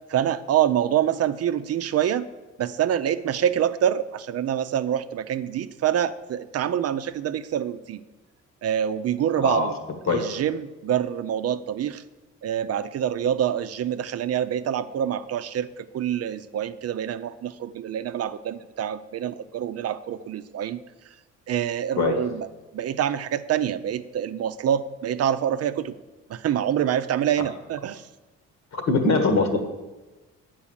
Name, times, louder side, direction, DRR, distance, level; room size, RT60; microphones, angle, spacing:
voice 1, 0.1-2.3 2.6-8.0 8.6-9.8 10.1-12.0 12.4-20.8 21.5-22.5 22.7-25.9 26.3-28.1, right 10 dB, 55° right, 12 dB, 0.5 m, -26 dB
voice 2, 9.4-9.7 10.1-10.2 21.9-22.1 28.7-29.6, left 3 dB, 65° left, 6 dB, 1.7 m, -22 dB
8.3 x 4.7 x 7.3 m, 1.2 s
cardioid pair, 90°, 30 cm